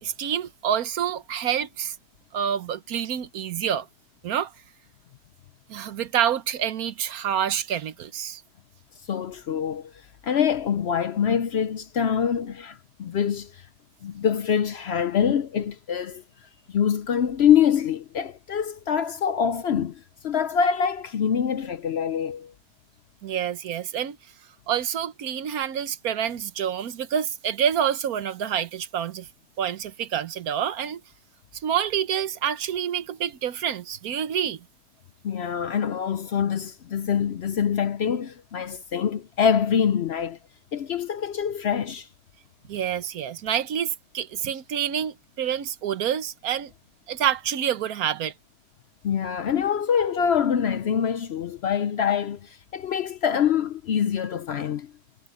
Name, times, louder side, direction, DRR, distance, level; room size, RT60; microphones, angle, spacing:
voice 1, 0.0-2.0 2.3-3.9 4.2-4.5 5.7-8.4 23.2-24.2 24.7-29.3 29.6-31.0 31.5-34.6 42.7-46.7 47.1-48.3, right 9 dB, 75° right, 1.4 m, -27 dB
voice 2, 9.1-9.9 10.2-13.6 14.0-16.2 16.7-22.5 35.2-40.4 40.7-42.1 49.0-54.9, left 8 dB, 60° left, 0.7 m, -25 dB
omnidirectional pair, 1.6 m